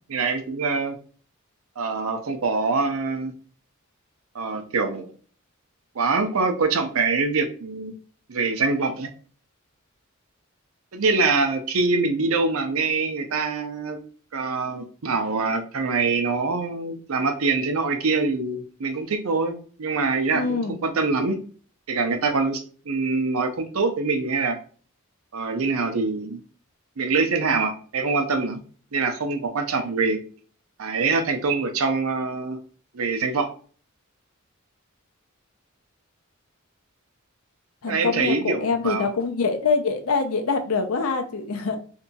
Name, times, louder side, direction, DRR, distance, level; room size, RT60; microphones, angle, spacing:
voice 1, 0.1-0.9 1.8-3.3 4.3-5.1 6.0-8.0 8.3-9.1 10.9-14.0 14.3-21.4 21.9-24.6 25.3-26.4 27.0-28.6 28.9-30.2 30.8-32.6 32.9-33.5 37.9-39.1, right 4 dB, 80° right, 6 dB, 0.6 m, -24 dB
voice 2, 20.3-20.8 37.8-41.8, left 4 dB, 85° left, 5 dB, 0.6 m, -24 dB
2.7 x 2.3 x 3.9 m, 0.42 s
head